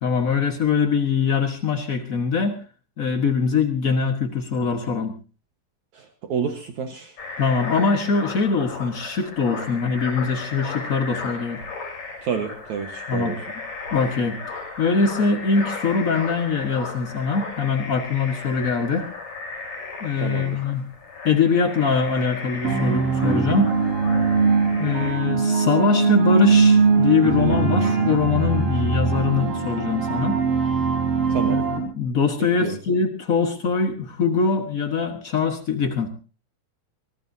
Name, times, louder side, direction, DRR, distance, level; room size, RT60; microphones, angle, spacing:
voice 1, 0.0-2.6 3.0-5.1 7.4-11.6 13.1-13.4 13.9-19.1 20.0-20.8 21.2-23.7 24.8-30.4 31.5-36.1, left 5 dB, 70° left, 5 dB, 0.8 m, -23 dB
voice 2, 5.9-7.2 12.2-13.4 20.2-20.6 31.3-31.6 32.4-32.8, right 7 dB, 60° right, 4 dB, 2.5 m, -29 dB
sound 1, 7.2-25.1, left 4 dB, 55° left, 7.4 m, -35 dB
sound 2, 22.6-31.8, right 4 dB, 45° right, 5.2 m, -21 dB
24.5 x 17.5 x 2.7 m, 0.36 s
omnidirectional pair, 4.0 m